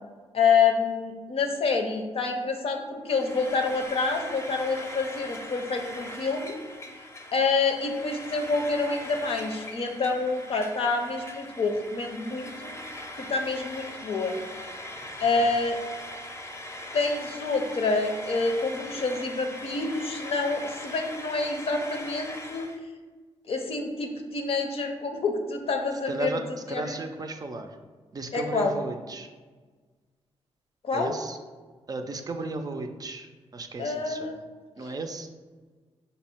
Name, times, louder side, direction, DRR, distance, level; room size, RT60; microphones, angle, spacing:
voice 1, 0.3-6.5 7.3-12.7 13.2-14.4 15.2-15.8 16.9-22.7 23.5-26.3 26.7-27.0 28.3-28.8 30.8-31.1 33.8-34.4 34.8-34.9, left 4 dB, 65° left, 4 dB, 0.6 m, -27 dB
Frying (food), 3.1-22.8, left 1 dB, 25° left, 0.6 m, -41 dB
voice 2, 26.1-27.8 28.1-29.3 30.9-31.4 31.9-34.4 34.8-35.3, right 2 dB, 35° right, 6 dB, 0.4 m, -35 dB
5.2 x 2.1 x 4.3 m, 1.4 s
cardioid pair, 75°, 11 cm